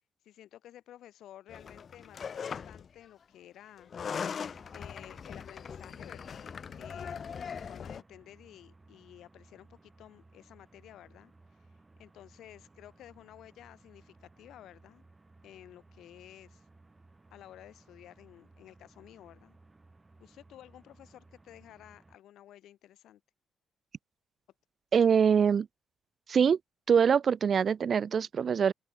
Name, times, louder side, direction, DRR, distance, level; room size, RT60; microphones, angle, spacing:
voice 1, 0.2-3.9 4.7-11.3 12.0-15.0 15.4-16.7 17.3-19.6 20.2-23.2, left 12 dB, 80° left, 4.7 m, -53 dB
sound 1, 1.5-2.9 3.8-8.0, left 6 dB, 50° left, 2.1 m, -40 dB
sound 2, 4.4-22.2, right 2 dB, 20° right, 6.3 m, -60 dB
voice 2, 24.9-25.7 26.3-26.6 26.9-28.7, right 7 dB, 50° right, 0.4 m, -24 dB
cardioid pair, 85°, 0 cm